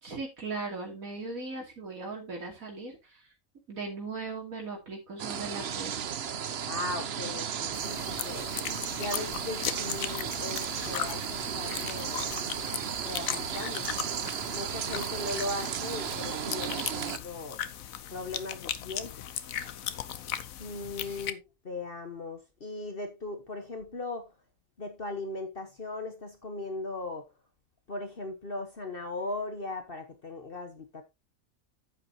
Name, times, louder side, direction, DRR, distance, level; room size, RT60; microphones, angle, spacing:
voice 1, 0.0-3.3 3.7-5.9 21.0-21.3, right 3 dB, 80° right, 3.1 m, -38 dB
sound 1, 5.2-17.2, right 8 dB, 55° right, 0.9 m, -34 dB
voice 2, 6.7-8.5 8.9-12.4 13.0-13.9 14.5-17.6 18.1-19.1 20.6-24.3 24.8-27.3 27.9-31.0, left 2 dB, 45° left, 1.4 m, -38 dB
sound 2, 7.7-21.3, left 10 dB, 85° left, 1.2 m, -38 dB
9.8 x 8.3 x 2.9 m
omnidirectional pair, 1.4 m